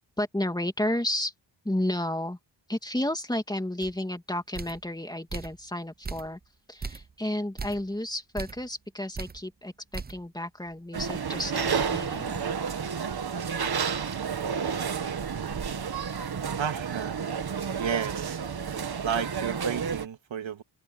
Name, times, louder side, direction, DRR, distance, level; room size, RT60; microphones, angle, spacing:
voice 1, 0.0-1.3 1.6-2.4 2.7-6.4 6.7-12.4, left 1 dB, 10° left, 2.6 m, -32 dB
sound 1, 3.8-4.0 4.5-4.9 5.3-5.6 6.0-6.5 6.8-7.1 7.6-7.9 8.3-8.7 9.1-9.4 9.9-10.3 10.7-10.8 11.2-12.7, right 4 dB, 20° right, 0.7 m, -39 dB
sound 2, 10.9-20.1, right 6 dB, 55° right, 1.8 m, -31 dB
voice 2, 16.6-17.4 17.8-18.4 19.0-20.6, right 8 dB, 80° right, 2.4 m, -32 dB
wide cardioid pair, 100°, 46 cm